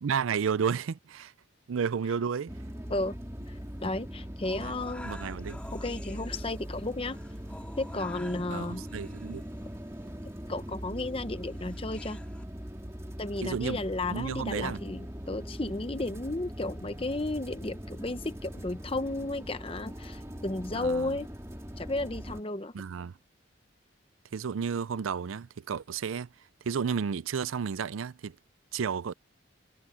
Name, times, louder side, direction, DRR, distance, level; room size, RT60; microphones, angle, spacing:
voice 1, 0.0-1.3 1.7-2.6 4.6-4.7 5.0-5.6 8.5-9.4 13.4-13.8 14.1-14.8 20.7-21.1 22.7-23.1 24.3-26.3 26.6-28.4 28.7-29.1, right 6 dB, 90° right, 0.5 m, -32 dB
sound 1, 2.5-22.4, equal, 15° right, 2.0 m, -41 dB
voice 2, 3.5-5.1 5.7-7.2 7.8-8.8 10.5-12.2 13.2-21.3 21.8-22.7, left 2 dB, 25° left, 0.9 m, -33 dB
sound 2, 4.4-12.4, left 1 dB, 5° left, 2.1 m, -50 dB
head